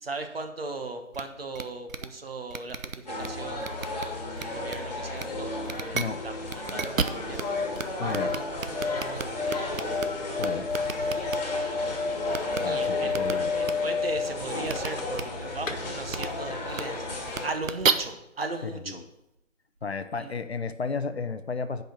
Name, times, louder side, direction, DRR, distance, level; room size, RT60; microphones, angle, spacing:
voice 1, 0.0-3.7 4.4-5.5 5.8-6.3 6.7-7.4 7.9-8.5 8.7-9.7 12.6-19.0 20.2-20.3, right 3 dB, 50° right, 6 dB, 1.2 m, -37 dB
sound 1, 1.1-1.2 1.5-1.6 1.9-2.1 2.5-3.3 3.6-4.0 4.4-4.7 5.2-5.3 5.6-6.0 6.5-7.4 7.7-7.8 8.1-10.0 10.4-11.4 12.3-12.6 13.1-13.3 13.6-13.7 14.6-14.9 15.1-15.2 16.1-16.3 16.7-16.8 17.3-17.9, right 6 dB, 85° right, 0.8 m, -30 dB
sound 2, 3.1-17.5, left 2 dB, 30° left, 1.6 m, -34 dB
sound 3, 7.1-15.3 15.6-15.7, left 4 dB, 80° left, 1.3 m, -31 dB
voice 2, 8.0-8.3 10.3-10.7 12.6-13.5 18.9-19.0 19.8-21.8, left 4 dB, 55° left, 11 dB, 0.6 m, -33 dB
8.8 x 5.2 x 6.0 m, 0.87 s
figure-of-eight pair, 165°, 39 cm